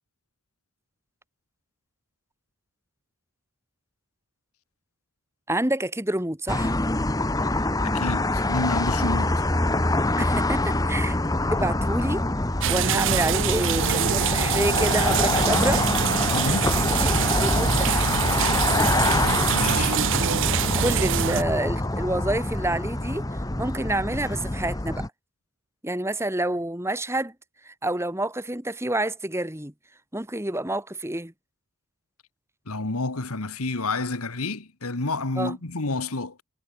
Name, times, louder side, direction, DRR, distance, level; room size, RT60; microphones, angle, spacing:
voice 1, 5.5-6.8 10.2-11.2 11.5-12.3 12.7-15.9 16.4-18.1 20.8-25.1 25.8-27.3 27.6-29.7 30.1-31.3 35.4-35.5, right 1 dB, 10° right, 1.8 m, -28 dB
sound 1, 6.5-25.1, left 2 dB, 15° left, 1.1 m, -25 dB
voice 2, 7.8-9.5 16.3-16.7 19.5-20.0 32.7-36.4, left 2 dB, 80° left, 1.9 m, -29 dB
sound 2, 12.6-21.4, right 9 dB, 55° right, 0.5 m, -25 dB
head